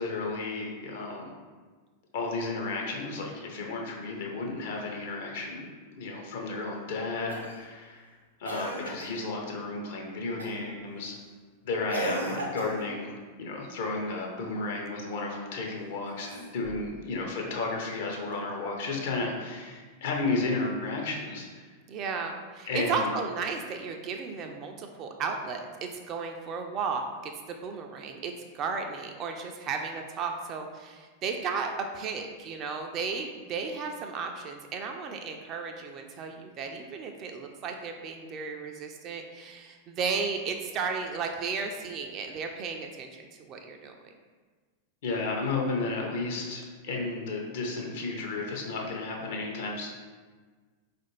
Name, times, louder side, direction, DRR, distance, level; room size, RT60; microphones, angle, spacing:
voice 1, 0.0-1.3 2.1-8.1 8.4-11.2 11.6-16.3 16.5-21.7 22.7-23.1 45.0-49.9, left 3 dB, 55° left, 0 dB, 0.6 m, -33 dB
Cough, 7.3-7.7 8.4-9.2 10.4-10.7 11.9-13.0 16.1-16.9 18.3-18.4, right 1 dB, 80° right, 0.6 m, -35 dB
voice 2, 21.9-43.9, right 5 dB, 35° right, 4 dB, 0.3 m, -34 dB
3.9 x 2.5 x 3.0 m, 1.4 s
figure-of-eight pair, 90°, 0 cm